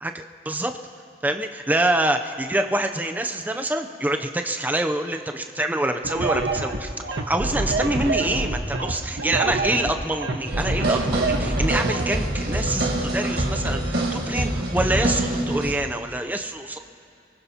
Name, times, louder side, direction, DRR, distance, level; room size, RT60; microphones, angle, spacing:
voice 1, 0.0-0.7 1.2-16.8, right 1 dB, 10° right, 5 dB, 0.5 m, -26 dB
sound 1, 6.0-12.1, right 2 dB, 85° right, 1.2 m, -26 dB
sound 2, 10.5-15.7, right 1 dB, 65° right, 1.6 m, -25 dB
24.0 x 19.5 x 2.8 m, 2.7 s
head